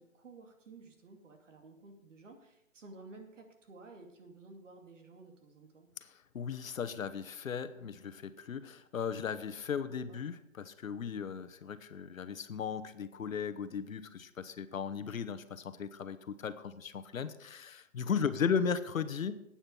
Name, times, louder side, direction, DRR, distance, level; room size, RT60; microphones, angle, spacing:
voice 1, 0.0-5.9 9.8-10.2 18.3-18.5, right 3 dB, 60° right, 4 dB, 2.6 m, -54 dB
voice 2, 6.3-19.4, left 6 dB, 75° left, 11 dB, 1.1 m, -36 dB
12.0 x 8.9 x 5.5 m, 0.83 s
hypercardioid pair, 165°, 40 cm